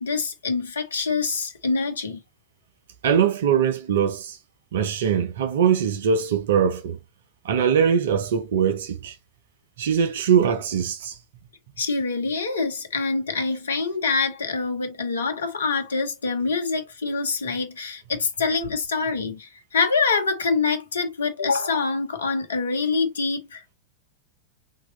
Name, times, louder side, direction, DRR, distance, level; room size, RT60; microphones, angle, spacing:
voice 1, 0.0-2.2 11.8-23.7, left 4 dB, 70° left, 0.8 m, -25 dB
voice 2, 3.0-4.4 4.7-7.0 7.4-9.1 9.8-11.1, right 7 dB, 60° right, 0.7 m, -22 dB
3.7 x 3.0 x 2.9 m
figure-of-eight pair, 90°, 0 cm